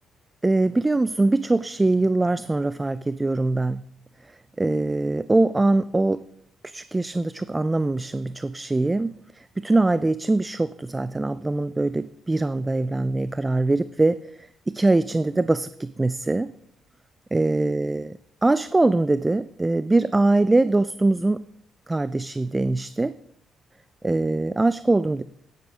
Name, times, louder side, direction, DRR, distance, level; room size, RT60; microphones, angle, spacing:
voice 1, 0.4-3.8 4.6-6.2 6.6-16.5 17.3-21.4 21.9-23.1 24.0-25.2, right 2 dB, 15° right, 15 dB, 0.4 m, -22 dB
9.2 x 8.0 x 6.1 m, 0.70 s
cardioid pair, 90°, 0 cm